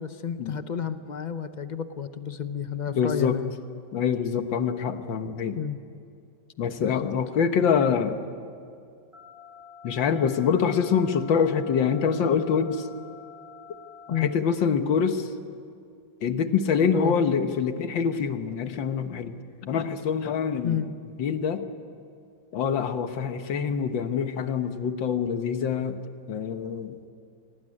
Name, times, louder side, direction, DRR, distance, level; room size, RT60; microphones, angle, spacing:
voice 1, 0.0-3.5 5.6-5.8 6.8-7.1 14.1-14.3 16.9-17.2 20.6-20.9, left 7 dB, 65° left, 10 dB, 0.4 m, -31 dB
voice 2, 2.9-3.4 3.9-5.6 6.6-8.2 9.8-12.9 14.2-15.3 16.2-20.8 21.2-21.6 22.5-26.0 26.3-26.9, left 6 dB, 80° left, 8 dB, 2.0 m, -25 dB
sound 1, 9.1-14.1, left 6 dB, ahead, 6.2 m, -47 dB
25.0 x 19.0 x 9.9 m, 2.4 s
omnidirectional pair, 2.0 m